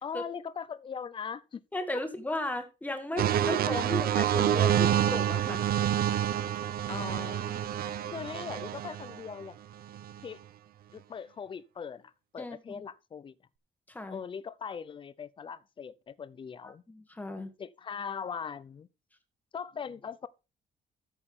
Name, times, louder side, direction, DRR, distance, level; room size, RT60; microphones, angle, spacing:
voice 1, 0.0-1.6 5.7-5.8 6.9-7.6 8.1-9.6 10.2-10.4 10.9-13.4 14.1-16.8 17.6-18.9 19.5-20.3, left 6 dB, 30° left, 0.6 m, -40 dB
voice 2, 1.7-5.9 12.4-12.8 13.9-14.2 16.6-17.5, left 1 dB, 10° left, 1.6 m, -36 dB
sound 1, 3.2-9.2 9.9-10.2, right 10 dB, 60° right, 0.7 m, -28 dB
13.5 x 6.4 x 3.7 m
cardioid pair, 170°, 17 cm